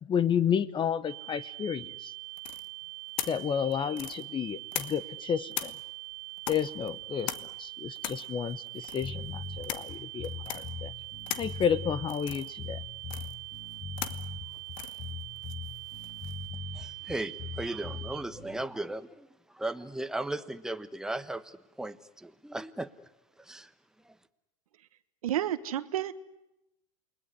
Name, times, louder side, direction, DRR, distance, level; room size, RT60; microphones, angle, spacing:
voice 1, 0.0-2.1 3.3-5.7 6.5-10.9 11.4-12.8, left 8 dB, 25° left, 18 dB, 1.0 m, -31 dB
sound 1, 1.1-18.2, right 34 dB, 55° right, 1.7 m, -43 dB
sound 2, 2.4-5.2 5.5-16.5, left 13 dB, 65° left, 1.4 m, -41 dB
sound 3, 9.0-18.6, left 4 dB, 45° left, 7.0 m, -40 dB
voice 2, 16.7-19.3 19.5-22.9 23.5-23.7, right 2 dB, 5° right, 10 dB, 1.1 m, -36 dB
voice 3, 25.2-26.1, right 12 dB, 80° right, 13 dB, 1.3 m, -30 dB
28.5 x 20.5 x 9.7 m, 0.92 s
hypercardioid pair, 105°, 18 cm